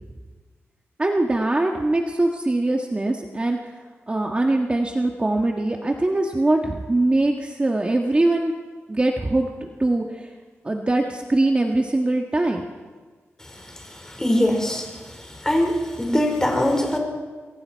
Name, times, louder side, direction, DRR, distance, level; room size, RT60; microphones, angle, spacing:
voice 1, 1.0-3.6 4.1-8.5 8.9-10.3 10.6-12.6, right 2 dB, 25° right, 1 dB, 1.6 m, -22 dB
voice 2, 14.0-14.9 15.4-17.0, left 1 dB, 15° left, 2 dB, 5.0 m, -22 dB
28.0 x 22.0 x 4.7 m, 1.4 s
wide cardioid pair, 100°, 5 cm